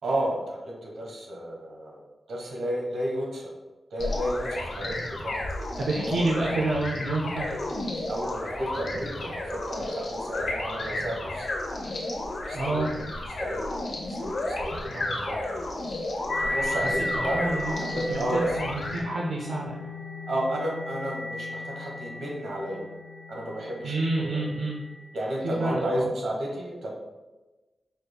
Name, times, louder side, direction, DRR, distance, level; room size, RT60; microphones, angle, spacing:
voice 1, 0.0-2.0 2.3-3.5 3.9-5.4 6.0-6.6 8.1-11.5 12.5-13.0 13.4-13.6 14.2-15.6 16.4-18.6 20.3-22.9 23.3-24.4 25.1-26.9, right 1 dB, 85° right, -2 dB, 1.3 m, -32 dB
sound 1, 4.0-19.0, left 2 dB, 60° left, 0.9 m, -33 dB
voice 2, 5.8-7.6 12.5-12.9 17.1-17.7 18.1-19.7 23.8-24.8 25.4-26.1, right 2 dB, 70° right, -3 dB, 0.5 m, -28 dB
sound 2, 16.3-25.8, left 2 dB, 40° left, 0.4 m, -35 dB
5.1 x 4.2 x 2.3 m, 1.1 s
wide cardioid pair, 165°, 0 cm